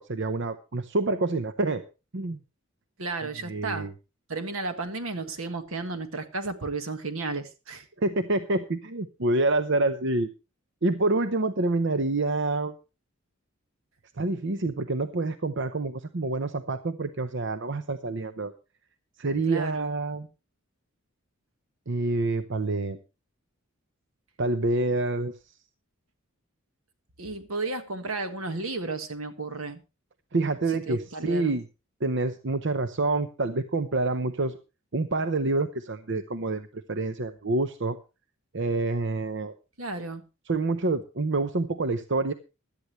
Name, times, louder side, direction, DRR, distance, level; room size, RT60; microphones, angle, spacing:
voice 1, 0.0-1.8 2.1-2.4 3.5-3.9 8.0-10.3 10.8-12.7 14.2-18.5 19.2-20.3 21.9-23.0 24.4-25.3 30.3-31.6 32.0-34.6 34.9-38.0 38.5-39.6 40.5-42.3, right 2 dB, 55° right, 0.8 m, -27 dB
voice 2, 3.0-3.9 4.3-7.9 19.5-19.9 27.2-29.8 30.9-31.6 39.8-40.3, right 3 dB, 80° right, 1.7 m, -33 dB
16.5 x 12.0 x 3.1 m
head